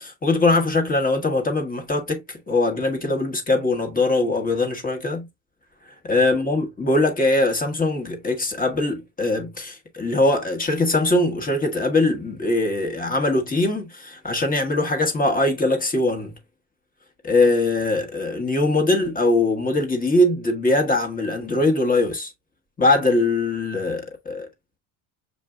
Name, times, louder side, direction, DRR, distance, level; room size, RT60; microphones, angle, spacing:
voice 1, 0.0-5.3 6.0-16.4 17.2-22.3 22.8-24.5, left 2 dB, 20° left, 1.2 m, -21 dB
6.7 x 2.5 x 2.3 m
supercardioid pair, 105°, 43 cm